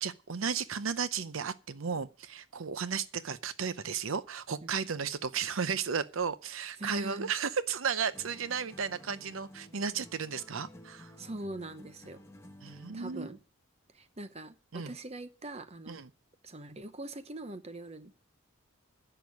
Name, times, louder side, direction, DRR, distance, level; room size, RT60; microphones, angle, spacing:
voice 1, 0.0-11.1 12.6-13.3 14.7-14.9 15.9-16.1, right 6 dB, 75° right, 0.7 m, -34 dB
voice 2, 6.8-7.3 11.2-12.2 12.9-13.4 13.9-16.0 16.4-18.1, right 2 dB, 30° right, 0.9 m, -42 dB
sound 1, 8.1-13.5, left 1 dB, 15° left, 1.1 m, -53 dB
10.5 x 6.9 x 9.4 m
head